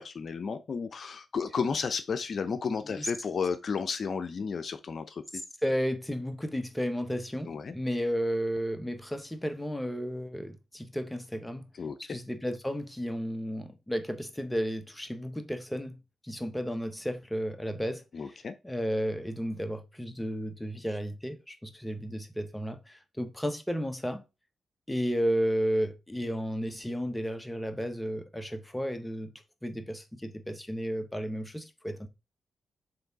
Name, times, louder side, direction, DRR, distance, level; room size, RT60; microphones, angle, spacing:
voice 1, 0.0-5.4 7.4-7.7 11.8-12.2 18.1-18.6, left 5 dB, 60° left, 0.6 m, -33 dB
voice 2, 5.6-11.7 12.0-18.0 18.6-24.2 24.9-29.3 29.6-32.1, equal, 10° left, 1.2 m, -33 dB
7.0 x 3.3 x 4.0 m
cardioid pair, 60°, 0 cm